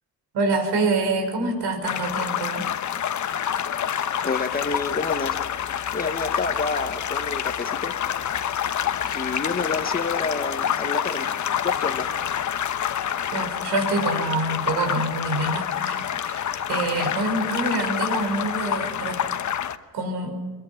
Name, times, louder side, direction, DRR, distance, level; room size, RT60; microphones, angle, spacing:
voice 1, 0.3-2.7 13.3-19.2 19.9-20.4, right 2 dB, 85° right, 5 dB, 5.7 m, -26 dB
sound 1, 1.8-19.8, left 9 dB, 45° left, 1.0 m, -27 dB
voice 2, 4.2-5.4 5.9-7.9 9.0-11.3 11.6-12.1, left 4 dB, 25° left, 8 dB, 1.3 m, -29 dB
24.5 x 22.5 x 5.9 m, 1.4 s
cardioid pair, 155°, 39 cm